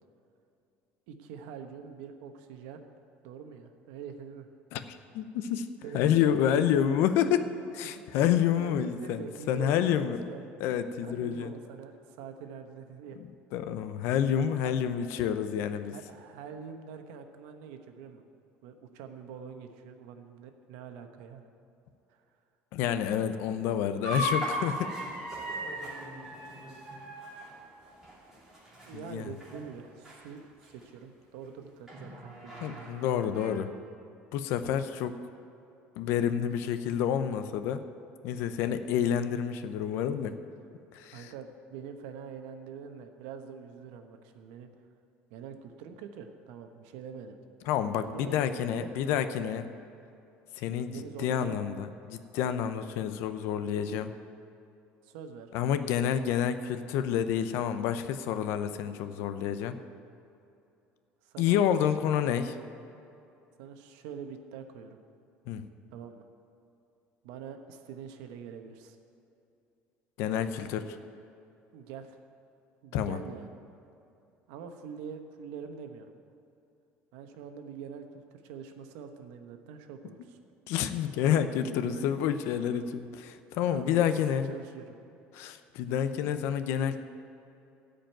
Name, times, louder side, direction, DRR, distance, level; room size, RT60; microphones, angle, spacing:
voice 1, 1.1-2.8 3.2-4.5 5.8-6.7 7.8-8.0 8.6-10.5 11.0-13.2 14.6-14.7 15.9-18.2 18.6-21.5 22.1-22.2 25.0-25.1 25.7-26.0 28.8-33.0 41.1-44.7 45.3-47.4 47.9-48.4 48.7-49.0 50.9-51.7 55.0-55.5 61.2-61.6 63.6-65.0 65.9-66.2 67.2-69.0 71.7-72.2 72.8-73.5 74.5-76.1 77.1-80.4 81.5-81.6 81.8-82.1 82.7-83.0 83.7-85.0, right 6 dB, 85° right, 6 dB, 1.0 m, -45 dB
voice 2, 4.7-5.7 5.9-7.4 7.7-10.2 10.6-11.5 13.5-15.9 22.7-24.9 28.9-29.3 32.6-33.7 34.3-35.2 36.0-37.8 38.2-40.3 40.9-41.3 47.7-49.7 50.6-54.1 55.5-59.8 61.4-62.5 65.5-65.6 70.2-71.0 72.9-73.2 80.7-84.5 85.3-87.0, left 9 dB, 70° left, 11 dB, 0.7 m, -29 dB
sound 1, 24.0-29.1 29.4-29.7 30.0-30.2 30.8-30.9 31.9-33.5, equal, 10° right, 3.0 m, -37 dB
13.5 x 5.2 x 9.1 m, 2.7 s
cardioid pair, 150°, 5 cm